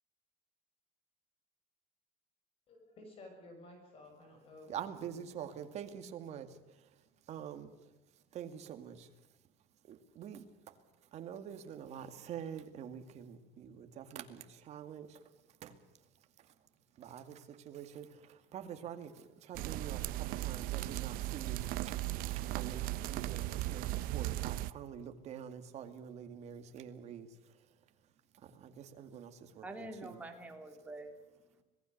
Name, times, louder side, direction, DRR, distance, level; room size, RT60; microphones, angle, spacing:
voice 1, 2.7-5.2, left 1 dB, 40° left, 4 dB, 6.4 m, -54 dB
voice 2, 4.7-6.6 7.3-7.7 8.3-9.1 9.8-10.8 11.1-15.2 15.6-15.8 17.0-27.3 28.4-29.6 30.0-30.2, right 8 dB, 45° right, 7 dB, 2.2 m, -46 dB
sound 1, 19.5-24.7, right 16 dB, 65° right, 0.8 m, -37 dB
voice 3, 28.9-31.6, right 2 dB, 10° right, 3 dB, 3.0 m, -48 dB
26.0 x 19.0 x 6.6 m, 1.1 s
cardioid pair, 165°, 16 cm